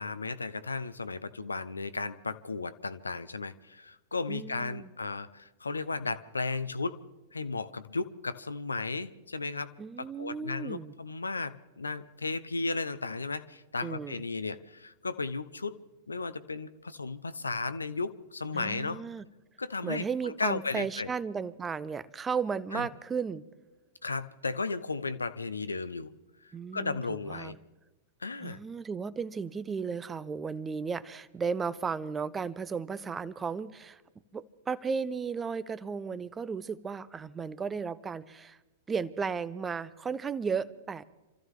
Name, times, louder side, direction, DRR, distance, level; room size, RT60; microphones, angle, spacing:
voice 1, 0.0-7.0 7.3-9.7 10.0-15.8 16.1-19.0 19.6-21.1 22.7-22.9 24.0-26.1 26.4-27.6 28.2-28.6, left 3 dB, 80° left, 13 dB, 0.7 m, -35 dB
voice 2, 4.3-4.9 9.8-10.9 13.8-14.2 18.5-19.2 19.8-23.5 26.5-27.0 27.3-27.5 28.4-34.0 34.3-38.6 38.9-41.0, right 5 dB, 15° right, 17 dB, 0.6 m, -34 dB
28.0 x 14.0 x 3.7 m, 1.1 s
figure-of-eight pair, 100°, 0 cm